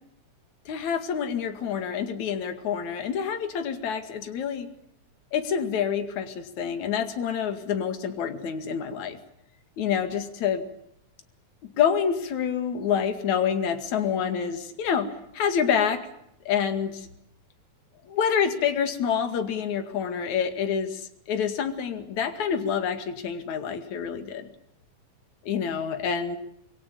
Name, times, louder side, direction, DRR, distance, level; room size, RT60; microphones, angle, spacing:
voice 1, 0.7-4.7 5.3-9.2 9.8-10.6 11.8-16.0 16.5-17.1 18.1-24.5 25.5-26.4, left 7 dB, 70° left, 8 dB, 3.5 m, -27 dB
27.5 x 22.0 x 7.0 m, 0.77 s
omnidirectional pair, 3.5 m